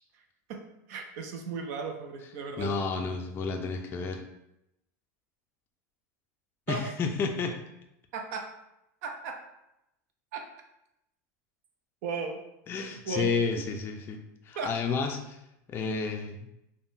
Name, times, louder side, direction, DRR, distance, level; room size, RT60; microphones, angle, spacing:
voice 1, 0.9-2.7 6.7-6.9 8.1-8.5 9.0-9.4 10.3-10.4 12.0-12.4 13.1-13.3 14.6-14.7, right 4 dB, 70° right, 3 dB, 0.4 m, -35 dB
voice 2, 2.6-4.2 6.7-7.6 12.7-14.2 14.4-15.4 15.7-16.5, left 4 dB, 25° left, 3 dB, 0.3 m, -31 dB
3.5 x 2.1 x 2.6 m, 0.85 s
supercardioid pair, 120°, 9 cm